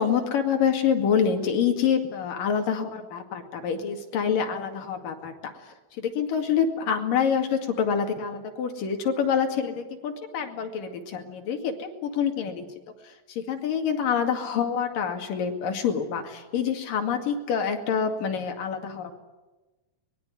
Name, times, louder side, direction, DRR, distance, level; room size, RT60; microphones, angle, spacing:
voice 1, 0.0-12.7 13.0-19.1, left 7 dB, 60° left, 4 dB, 3.6 m, -27 dB
24.0 x 21.5 x 9.9 m, 1.1 s
omnidirectional pair, 4.8 m